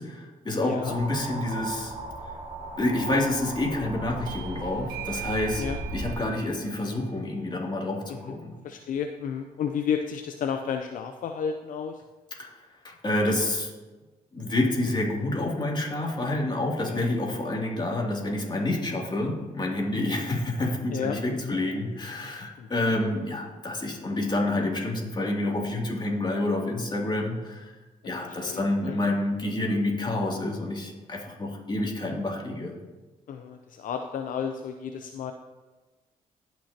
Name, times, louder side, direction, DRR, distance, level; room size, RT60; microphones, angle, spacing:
voice 1, 0.0-1.9 2.8-5.6 5.9-8.5 12.4-13.7 14.3-27.7 28.0-32.7, left 1 dB, 30° left, -2 dB, 2.7 m, -28 dB
voice 2, 0.6-0.9 5.6-5.8 8.1-8.3 8.6-12.0 16.3-16.4 16.9-17.1 17.5-17.6 19.9-20.3 20.9-21.6 22.6-23.0 28.2-29.0 33.3-35.3, left 7 dB, 70° left, 5 dB, 0.6 m, -32 dB
sound 1, 0.8-6.2, right 2 dB, 40° right, 2.2 m, -36 dB
Bell / Doorbell, 4.3-9.3, right 14 dB, 90° right, 0.9 m, -43 dB
18.0 x 6.1 x 2.9 m, 1.2 s
supercardioid pair, 65°, 14 cm